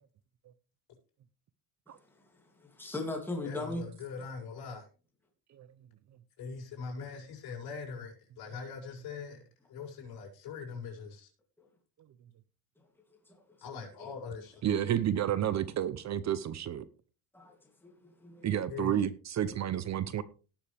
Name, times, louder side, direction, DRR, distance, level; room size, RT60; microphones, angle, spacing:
voice 1, 2.6-3.8 13.3-13.4 17.3-17.6 17.8-18.5, left 2 dB, 5° left, 2.7 m, -38 dB
voice 2, 3.4-4.9 6.4-9.4 9.7-11.3 13.6-14.6 18.7-18.9, left 5 dB, 60° left, 6.6 m, -42 dB
voice 3, 14.6-16.9 18.4-20.2, right 10 dB, 40° right, 0.7 m, -30 dB
18.0 x 7.2 x 3.4 m
cardioid pair, 145°, 41 cm